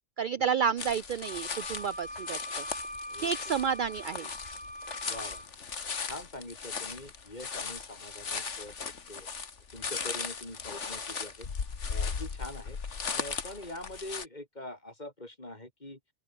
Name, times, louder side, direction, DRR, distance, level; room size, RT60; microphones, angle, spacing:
voice 1, 0.2-2.6 3.2-4.3, right 7 dB, 55° right, 0.6 m, -30 dB
sound 1, 0.8-14.2, left 5 dB, 90° left, 2.1 m, -37 dB
Wind instrument woodwind instrument, 1.2-5.5, left 1 dB, 5° left, 2.0 m, -42 dB
voice 2, 3.1-3.5 5.1-5.4 6.0-9.3 9.7-11.5 11.9-12.8 13.1-16.0, left 1 dB, 40° left, 4.9 m, -44 dB
open air
omnidirectional pair, 1.2 m